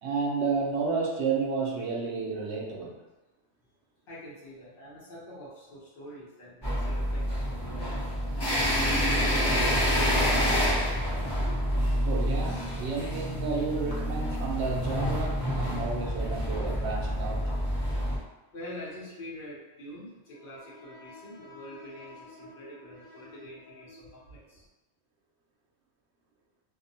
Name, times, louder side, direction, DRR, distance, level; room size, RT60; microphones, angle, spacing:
voice 1, 0.0-2.9 12.0-17.4, right 4 dB, 85° right, -1 dB, 0.9 m, -31 dB
voice 2, 4.1-7.9 8.7-10.7 18.5-24.7, equal, 60° left, -7 dB, 1.0 m, -45 dB
sound 1, 6.6-18.2, equal, 25° left, 0.6 m, -28 dB
2.6 x 2.1 x 2.6 m, 1.1 s
omnidirectional pair, 1.1 m